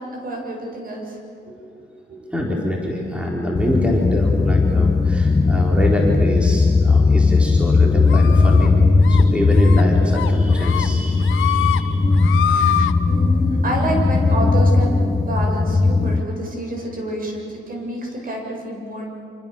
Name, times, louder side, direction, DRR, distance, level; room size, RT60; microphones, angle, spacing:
voice 1, 0.2-1.2 1.4-2.2 7.0-7.3 7.8-7.9 12.5-12.6 13.1-19.1, right 1 dB, 45° right, 0 dB, 7.6 m, -28 dB
voice 2, 2.3-8.8 9.1-12.0, left 1 dB, 5° right, -2 dB, 4.3 m, -25 dB
sound 1, 3.6-16.2, left 3 dB, 20° left, 0.8 m, -17 dB
sound 2, 8.1-8.7 9.0-9.2 9.6-9.8 10.1-10.9 11.2-11.8 12.1-12.9, left 10 dB, 80° left, 1.1 m, -24 dB
26.5 x 26.0 x 7.2 m, 2.6 s
cardioid pair, 90°, 20 cm